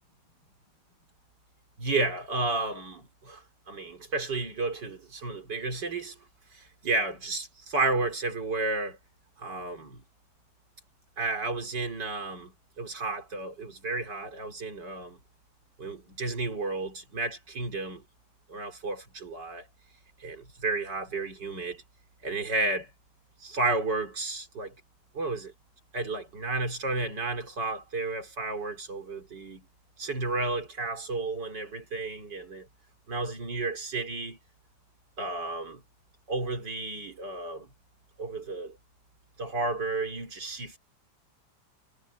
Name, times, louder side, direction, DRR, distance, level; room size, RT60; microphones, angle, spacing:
voice 1, 1.8-6.1 6.5-9.0 9.4-10.0 11.2-15.2 15.8-18.0 18.5-19.7 20.2-21.8 22.2-22.9 23.4-24.7 25.1-25.5 25.9-29.6 30.0-32.7 33.1-34.4 35.2-35.8 36.3-37.7 38.2-38.8 39.4-40.8, right 3 dB, 85° right, 4.4 m, -32 dB
omnidirectional pair, 1.8 m